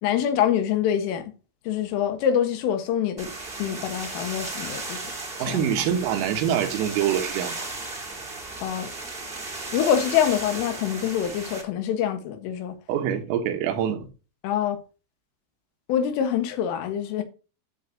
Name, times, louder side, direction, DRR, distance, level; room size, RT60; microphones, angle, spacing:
voice 1, 0.0-1.3 1.7-3.3 3.6-5.1 5.4-5.8 8.6-8.9 9.7-12.8 14.4-14.8 15.9-17.2, left 9 dB, 75° left, 3.9 m, -25 dB
sound 1, 3.2-11.6, right 3 dB, 60° right, 0.5 m, -35 dB
voice 2, 5.4-7.7 12.9-14.1, right 9 dB, 85° right, 4.0 m, -25 dB
13.0 x 6.9 x 2.9 m
omnidirectional pair, 5.9 m